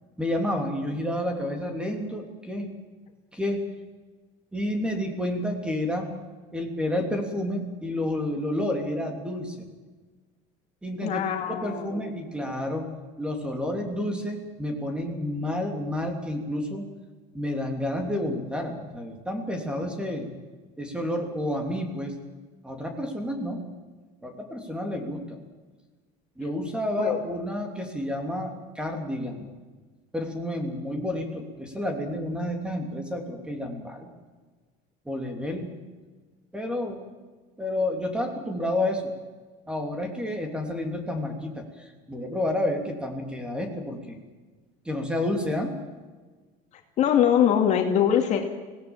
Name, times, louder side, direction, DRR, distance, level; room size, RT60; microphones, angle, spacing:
voice 1, 0.2-2.7 3.3-3.6 4.5-6.2 6.5-9.7 10.8-12.9 13.2-16.9 17.3-20.3 20.8-22.1 22.6-23.6 24.2-25.4 26.4-29.5 30.1-34.1 35.0-35.8 36.5-37.0 37.6-39.1 39.7-44.2 44.8-45.8, left 1 dB, 5° right, 4 dB, 3.2 m, -30 dB
voice 2, 11.0-12.0 27.0-27.2 47.0-48.4, left 9 dB, 45° left, 3 dB, 2.4 m, -22 dB
25.5 x 18.0 x 7.4 m, 1.3 s
cardioid pair, 150°, 17 cm